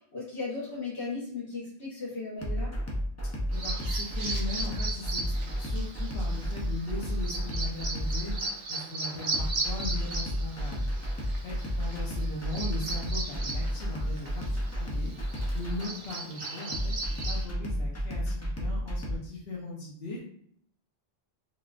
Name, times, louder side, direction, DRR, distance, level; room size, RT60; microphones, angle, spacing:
voice 1, 0.0-2.7, left 3 dB, 85° left, -7 dB, 1.6 m, -36 dB
sound 1, 2.4-19.1, equal, 25° left, 0.3 m, -32 dB
voice 2, 3.5-10.9 11.4-15.1 15.5-16.9 17.3-20.2, left 2 dB, 70° left, -5 dB, 0.9 m, -39 dB
Bird vocalization bird call bird song, 3.5-17.5, right 3 dB, 55° right, 0.6 m, -38 dB
3.5 x 2.4 x 2.3 m, 0.65 s
omnidirectional pair, 1.1 m